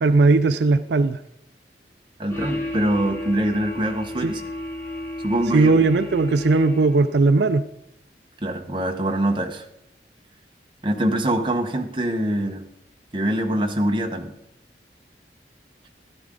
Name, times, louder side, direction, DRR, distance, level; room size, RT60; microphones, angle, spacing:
voice 1, 0.0-1.2 4.2-4.3 5.5-7.6, right 3 dB, 75° right, 11 dB, 0.4 m, -18 dB
voice 2, 2.2-4.4 5.2-5.7 8.4-9.6 10.8-12.6 13.1-14.3, right 1 dB, 30° right, 3 dB, 1.1 m, -24 dB
sound 1, 2.3-7.1, left 1 dB, 15° left, 2.4 m, -33 dB
13.0 x 11.0 x 3.8 m, 0.82 s
head